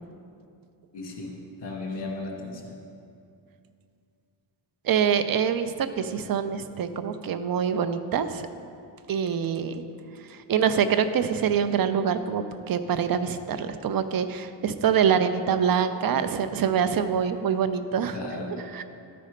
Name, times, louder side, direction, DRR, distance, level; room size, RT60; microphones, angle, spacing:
voice 1, 0.9-2.8 18.1-18.6, left 2 dB, 60° left, -2 dB, 2.1 m, -35 dB
voice 2, 4.8-8.5 9.1-9.7 10.3-18.2 18.7-18.8, right 7 dB, 50° right, 10 dB, 0.5 m, -25 dB
12.5 x 4.3 x 5.1 m, 2.5 s
cardioid pair, 105°, 44 cm